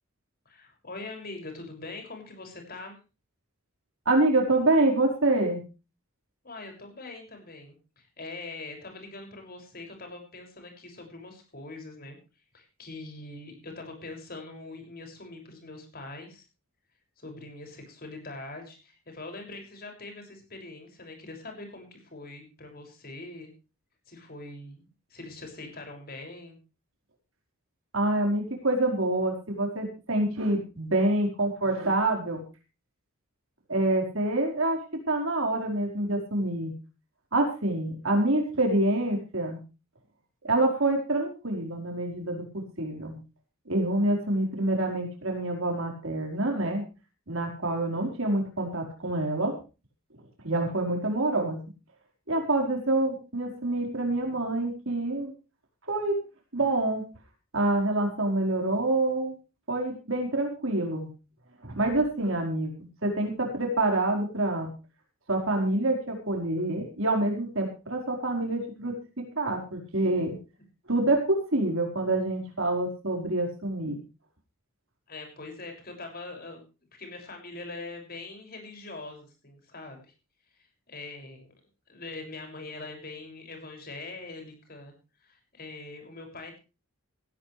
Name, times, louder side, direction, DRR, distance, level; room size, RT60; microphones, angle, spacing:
voice 1, 0.4-3.0 6.4-12.2 12.5-16.5 17.2-23.5 24.1-26.6 75.1-76.6 76.9-80.1 80.9-81.5 81.9-84.9 85.2-86.6, left 2 dB, 45° left, 3 dB, 6.5 m, -43 dB
voice 2, 4.0-5.6 27.9-32.4 33.7-34.8 35.1-36.7 37.3-39.6 40.4-43.1 43.7-46.8 47.3-49.5 50.4-51.6 52.3-55.3 55.9-56.2 56.5-57.0 57.5-59.3 59.7-61.1 61.6-64.7 65.3-69.0 69.4-70.4 70.9-74.0, right 2 dB, 60° right, 2 dB, 4.8 m, -26 dB
17.0 x 16.5 x 3.4 m, 0.33 s
head